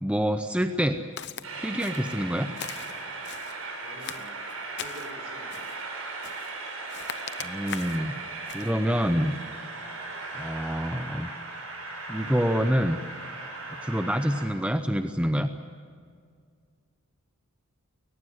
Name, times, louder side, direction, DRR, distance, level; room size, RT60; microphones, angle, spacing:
voice 1, 0.0-1.0 1.6-2.5 7.4-8.2 8.5-9.4 10.3-11.3 12.1-13.0 13.8-15.5, equal, 5° right, 7 dB, 0.7 m, -26 dB
Walk footsteps, 1.2-1.5 1.8-2.2 2.6-3.6 4.0-5.1 5.5-5.8 6.2-6.6 6.9-8.0 8.5-8.7, left 9 dB, 50° left, 0.9 m, -40 dB
Train, 1.4-14.5, right 3 dB, 80° right, 6.3 m, -38 dB
voice 2, 3.8-4.4 4.8-5.7, right 1 dB, 55° right, 3 dB, 5.8 m, -45 dB
22.5 x 19.5 x 8.1 m, 2.1 s
head